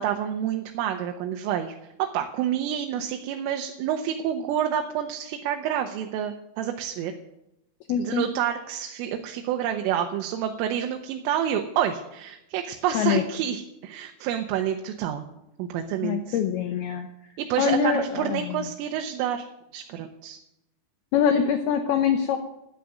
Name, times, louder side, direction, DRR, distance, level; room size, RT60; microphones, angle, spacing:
voice 1, 0.0-1.8 2.1-7.1 8.0-15.2 15.6-16.4 17.4-19.5 19.7-20.4, right 9 dB, 85° right, 4 dB, 3.6 m, -28 dB
voice 2, 7.9-8.3 12.9-13.2 16.0-17.1 17.6-18.7 21.1-22.4, left 8 dB, 80° left, 7 dB, 2.3 m, -24 dB
14.0 x 9.3 x 9.3 m, 0.87 s
omnidirectional pair, 5.7 m